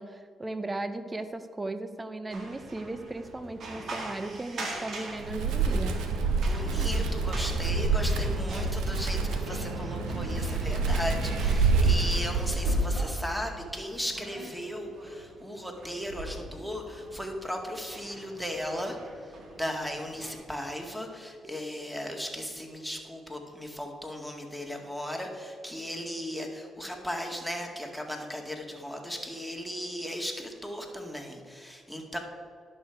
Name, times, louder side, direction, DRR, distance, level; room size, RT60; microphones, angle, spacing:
voice 1, 0.0-6.0, right 2 dB, 25° right, 10 dB, 0.7 m, -36 dB
sound 1, 2.3-20.3, right 1 dB, 65° right, 1.9 m, -40 dB
Wind, 5.2-12.9, right 3 dB, 85° right, 1.0 m, -27 dB
voice 2, 6.4-19.0 19.2-32.2, equal, ahead, 3 dB, 2.0 m, -36 dB
11.0 x 6.6 x 4.7 m, 2.2 s
supercardioid pair, 60°, 0 cm